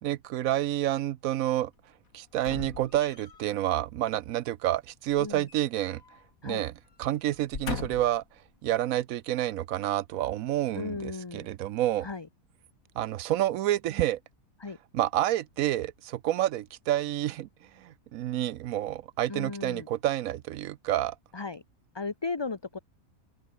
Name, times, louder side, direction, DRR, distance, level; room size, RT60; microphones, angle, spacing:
voice 1, 0.0-1.7 2.1-6.0 6.4-6.7 7.0-8.2 8.6-12.1 13.0-14.2 14.9-17.5 17.8-21.1, right 13 dB, 70° right, 1.0 m, -29 dB
sound 1, 2.4-3.5 5.1-6.2 6.5-6.7 7.3-8.3 8.9-9.0, left 5 dB, 65° left, 2.5 m, -39 dB
voice 2, 10.7-11.5 12.0-12.3 14.6-14.8 19.3-19.9 21.3-21.6 21.9-22.8, left 4 dB, 20° left, 0.9 m, -35 dB
open air
omnidirectional pair, 1.5 m